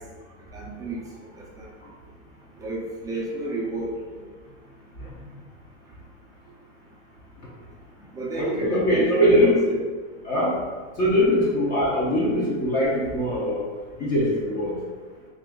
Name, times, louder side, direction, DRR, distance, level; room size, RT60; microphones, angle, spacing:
voice 1, 0.5-1.3 1.6-1.7 2.6-3.9 8.1-9.8, right 2 dB, 10° right, -4 dB, 0.4 m, -30 dB
voice 2, 8.3-9.5 10.2-10.5 11.0-13.6 14.0-14.7, equal, 25° left, -6 dB, 0.6 m, -22 dB
2.8 x 2.4 x 3.6 m, 1.4 s
supercardioid pair, 135°, 36 cm